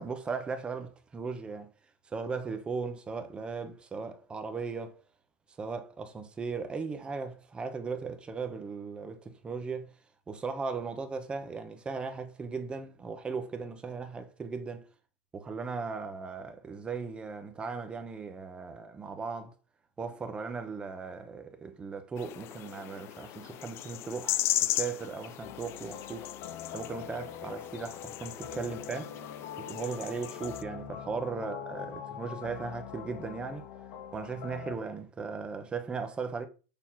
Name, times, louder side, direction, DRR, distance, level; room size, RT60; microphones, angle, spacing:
voice 1, 0.0-1.7 2.1-5.0 5.6-9.9 10.3-14.8 15.3-19.5 20.0-26.3 26.7-29.2 29.6-33.7 34.1-36.5, right 4 dB, 15° right, 1.0 m, -37 dB
sound 1, 22.2-30.6, left 14 dB, 35° left, 0.5 m, -36 dB
sound 2, 25.4-34.8, left 8 dB, 55° left, 1.4 m, -43 dB
7.1 x 4.3 x 5.7 m
supercardioid pair, 155°, 7 cm